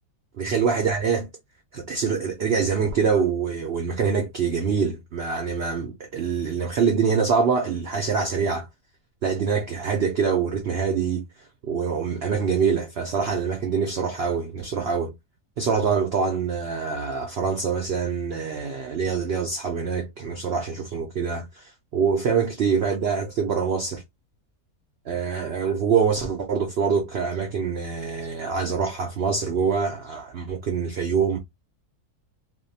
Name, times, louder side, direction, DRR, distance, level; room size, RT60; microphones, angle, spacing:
voice 1, 0.4-1.3 1.7-8.7 9.2-11.3 11.6-15.1 15.6-24.0 25.1-31.4, right 6 dB, 80° right, 0.5 m, -25 dB
2.6 x 2.1 x 2.6 m
omnidirectional pair, 1.7 m